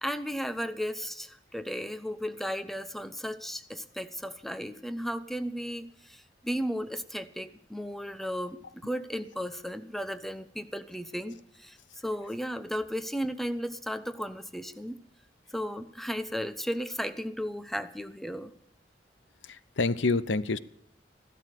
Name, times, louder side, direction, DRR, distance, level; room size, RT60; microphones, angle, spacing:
voice 1, 0.0-11.8 12.0-15.0 15.5-18.5, equal, ahead, 11 dB, 0.8 m, -35 dB
voice 2, 19.4-20.6, left 3 dB, 90° left, 17 dB, 0.7 m, -27 dB
15.0 x 12.5 x 6.6 m, 0.70 s
head